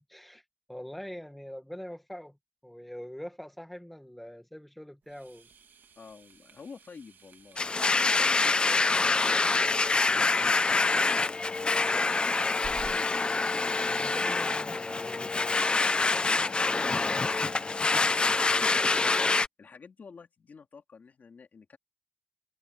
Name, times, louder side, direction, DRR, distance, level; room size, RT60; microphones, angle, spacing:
voice 1, 0.0-2.4 2.6-5.5 13.8-15.8, equal, 5° left, 1.4 m, -44 dB
sound 1, 5.0-13.2, right 6 dB, 80° right, 2.4 m, -53 dB
voice 2, 6.0-10.0 10.5-12.2 16.2-19.2 19.6-21.8, left 5 dB, 55° left, 3.4 m, -49 dB
Domestic sounds home sounds, 7.6-19.5, left 3 dB, 30° left, 0.6 m, -26 dB
wide cardioid pair, 155°, 3 cm